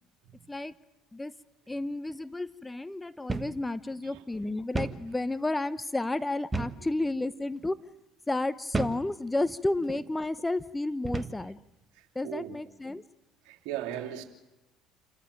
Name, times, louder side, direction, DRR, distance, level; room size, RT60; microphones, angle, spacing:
voice 1, 1.7-7.8 8.3-11.6 12.1-13.0, left 2 dB, 15° left, 0.8 m, -31 dB
sound 1, 3.3-3.6 3.9-4.0 4.7-5.1 6.5-6.9 7.6-7.8 8.7-9.1 9.8-10.0 11.0-11.4, right 3 dB, 20° right, 1.4 m, -32 dB
voice 2, 11.9-12.6 13.4-14.2, right 12 dB, 65° right, 2.7 m, -38 dB
28.0 x 14.5 x 9.0 m
hypercardioid pair, 60°, 0 cm